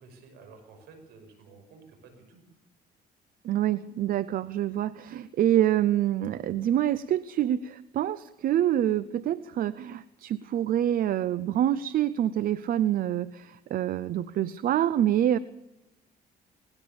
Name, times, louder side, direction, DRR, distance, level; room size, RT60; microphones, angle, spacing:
voice 1, 0.0-2.4, right 4 dB, 75° right, 7 dB, 6.0 m, -52 dB
voice 2, 3.4-15.4, right 11 dB, 55° right, 17 dB, 0.7 m, -26 dB
19.5 x 18.5 x 7.1 m, 0.89 s
cardioid pair, 110°, 17 cm